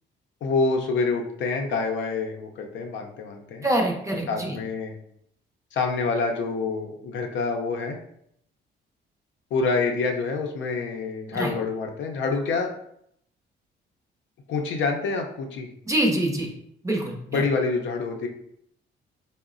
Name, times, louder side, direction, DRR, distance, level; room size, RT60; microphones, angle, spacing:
voice 1, 0.4-3.7 4.3-5.0 5.7-8.0 9.5-12.7 14.5-15.7 17.3-18.3, left 4 dB, 70° left, 2 dB, 0.5 m, -27 dB
voice 2, 3.6-4.6 11.3-11.5 15.9-16.5 16.8-17.4, right 1 dB, 15° right, 1 dB, 0.6 m, -25 dB
3.8 x 2.0 x 2.4 m, 0.72 s
cardioid pair, 90°, 20 cm